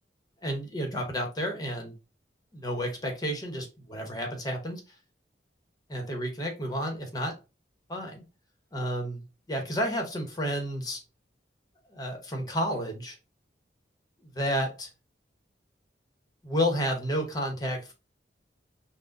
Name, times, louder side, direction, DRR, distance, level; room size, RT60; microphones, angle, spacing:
voice 1, 0.4-1.9 2.5-4.8 5.9-7.4 7.9-8.2 8.7-11.0 11.9-13.2 14.3-14.9 16.4-17.9, equal, 20° left, 2 dB, 0.9 m, -31 dB
6.0 x 2.1 x 2.5 m, 0.29 s
head